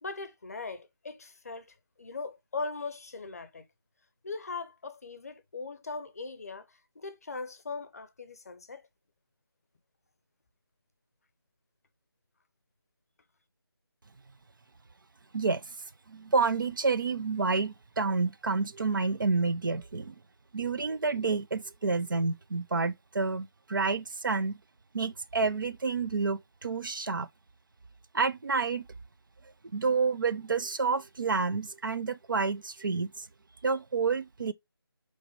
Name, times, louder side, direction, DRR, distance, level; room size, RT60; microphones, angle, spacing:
voice 1, 0.0-3.7 4.2-6.7 7.0-8.8, left 4 dB, 40° left, 0.6 m, -39 dB
voice 2, 15.3-15.8 16.1-20.2 20.5-24.6 24.9-27.3 28.1-28.9 29.7-33.3 33.6-34.5, right 4 dB, 55° right, 0.4 m, -29 dB
4.8 x 3.1 x 3.0 m
figure-of-eight pair, 165°, 13 cm